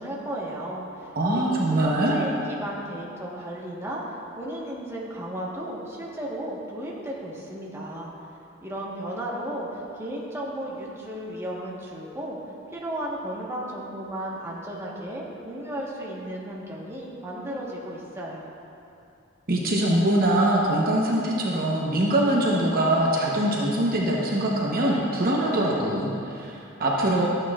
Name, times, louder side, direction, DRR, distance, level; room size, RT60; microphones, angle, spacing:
voice 1, 0.0-8.1 8.6-12.4 12.7-18.4, right 1 dB, 15° right, -5 dB, 1.3 m, -34 dB
voice 2, 1.1-2.2 19.5-27.3, right 1 dB, 45° right, -3 dB, 0.9 m, -23 dB
13.0 x 8.9 x 2.4 m, 2.7 s
head